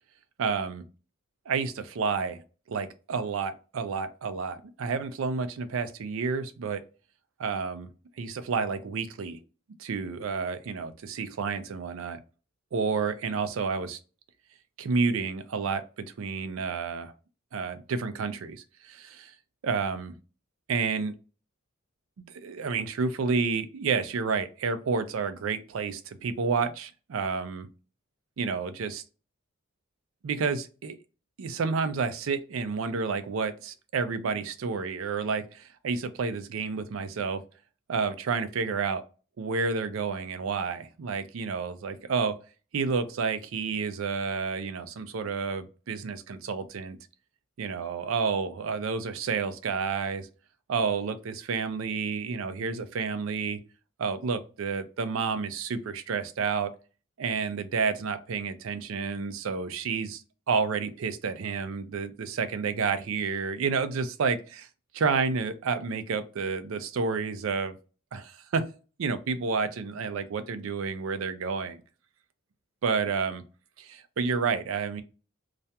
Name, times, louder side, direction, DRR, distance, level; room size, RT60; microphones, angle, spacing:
voice 1, 0.4-0.8 1.5-2.4 2.7-6.8 7.4-7.9 8.2-9.4 9.8-12.2 12.7-14.0 14.8-17.1 17.5-19.3 19.6-20.1 20.7-21.1 22.4-27.7 28.4-29.0 30.2-30.9 31.4-37.4 37.9-39.0 39.4-42.3 42.7-47.0 47.6-50.3 50.7-53.6 54.0-56.7 57.2-60.2 60.5-64.7 64.9-67.8 68.1-68.6 69.0-71.8 72.8-73.4 73.8-75.0, right 5 dB, 75° right, 0.4 m, -30 dB
2.4 x 2.1 x 2.7 m
head